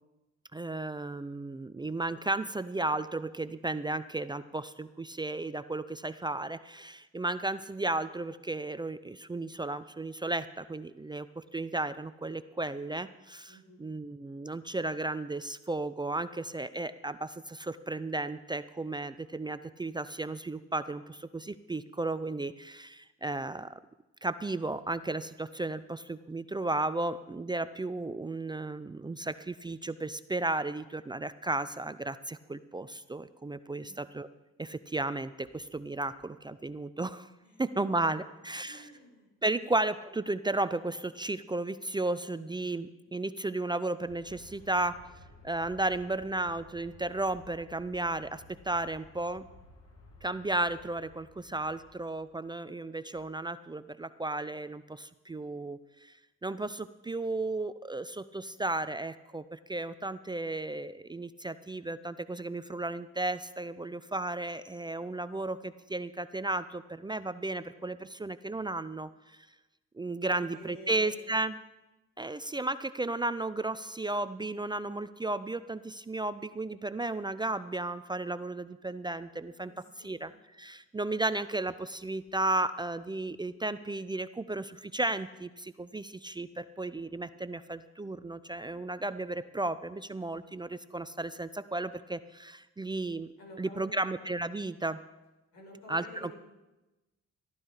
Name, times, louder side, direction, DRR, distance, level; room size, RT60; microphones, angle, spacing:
voice 1, 0.5-23.7 24.2-34.3 34.6-37.3 37.6-38.9 39.4-45.0 45.4-49.5 50.2-56.1 56.4-69.4 69.9-71.6 72.2-79.7 80.0-93.3 93.6-95.0 95.9-96.3, right 2 dB, 15° right, 13 dB, 0.4 m, -34 dB
voice 2, 13.5-13.9 33.7-34.0 37.4-38.0 38.6-39.6 70.2-71.2 79.6-80.3 93.4-94.2 95.5-96.3, equal, 85° left, -1 dB, 5.2 m, -51 dB
Aircraft, 44.0-52.4, left 2 dB, 55° left, 2.4 m, -56 dB
14.5 x 12.0 x 4.9 m, 1.0 s
cardioid pair, 90°, 30 cm